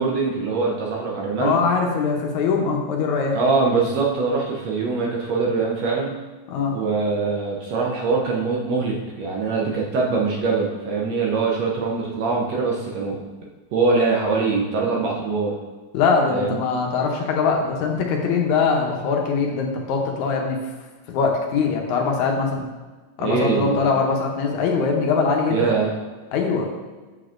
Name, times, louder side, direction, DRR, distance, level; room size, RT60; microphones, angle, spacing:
voice 1, 0.0-1.5 3.3-6.1 6.7-13.2 13.7-15.5 16.3-16.6 23.2-23.8 25.5-25.9, right 4 dB, 70° right, -2 dB, 1.7 m, -23 dB
voice 2, 1.4-3.4 6.5-6.8 15.9-20.6 21.1-22.6 23.2-25.7 26.3-26.7, left 5 dB, 75° left, 1 dB, 2.0 m, -22 dB
7.8 x 6.8 x 2.5 m, 1.3 s
omnidirectional pair, 3.6 m